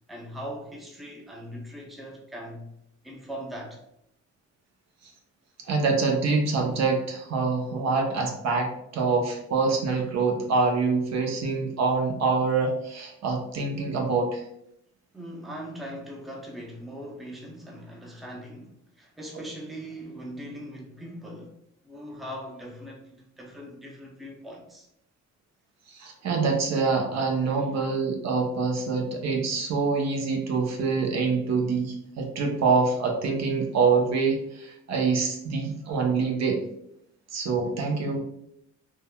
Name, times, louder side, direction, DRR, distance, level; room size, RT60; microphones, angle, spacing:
voice 1, 0.1-2.7 3.0-3.8 15.1-21.5 21.8-24.9 27.5-27.6, equal, ahead, 0.5 m, -40 dB
voice 2, 5.6-14.4 25.9-36.6 37.3-38.2, right 4 dB, 60° right, 0.7 m, -25 dB
3.5 x 2.1 x 2.2 m
cardioid pair, 90°, 30 cm